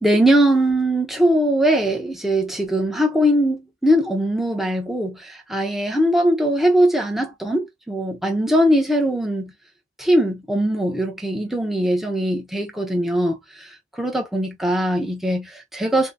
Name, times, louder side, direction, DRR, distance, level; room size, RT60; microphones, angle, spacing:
voice 1, 0.0-5.2 5.5-9.5 10.0-13.4 14.0-16.1, right 1 dB, ahead, 0.8 m, -20 dB
3.8 x 2.2 x 2.5 m
head